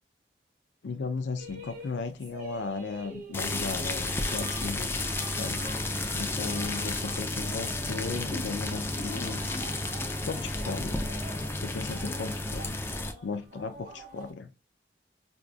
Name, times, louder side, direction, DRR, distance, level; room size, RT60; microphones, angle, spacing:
voice 1, 0.8-4.9 5.4-5.6 6.1-9.4 10.3-11.0 11.6-12.8 13.2-14.5, left 4 dB, 90° left, 0.4 m, -36 dB
sound 1, 1.4-14.3, right 2 dB, 50° right, 1.1 m, -47 dB
sound 2, 3.3-13.1, left 2 dB, 15° left, 0.3 m, -32 dB
5.0 x 2.3 x 2.4 m
head